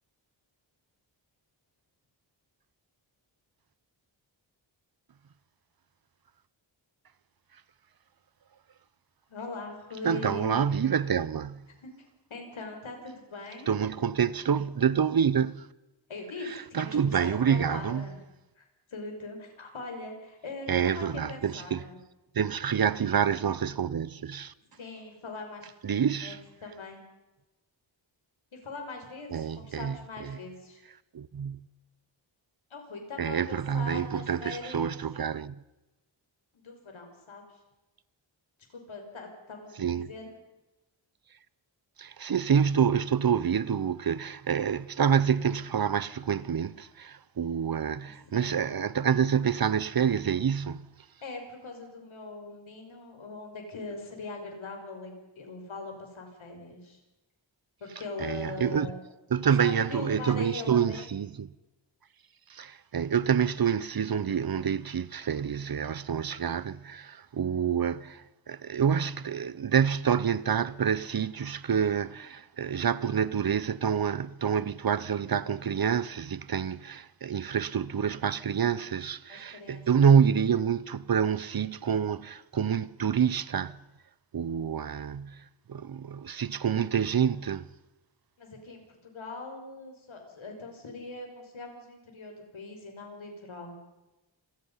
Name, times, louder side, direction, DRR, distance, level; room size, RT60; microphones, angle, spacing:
voice 1, 9.3-10.6 11.8-11.9 12.3-13.7 16.1-18.2 18.6-22.0 24.7-27.0 28.5-30.8 32.7-35.0 36.5-37.4 38.7-40.4 48.0-48.6 51.2-57.0 57.8-59.0 59.6-61.1 79.3-79.8 88.4-93.8, left 3 dB, 80° left, 6.0 m, -41 dB
voice 2, 10.0-11.6 13.7-15.7 16.4-18.1 20.7-21.9 22.3-24.5 25.8-26.4 29.3-30.4 31.1-31.6 33.2-35.6 39.8-40.1 42.0-50.8 58.2-58.9 59.3-61.5 62.5-83.8 84.3-85.4 85.7-87.7, right 7 dB, 50° right, 0.7 m, -27 dB
27.0 x 18.0 x 5.6 m
wide cardioid pair, 130°, 46 cm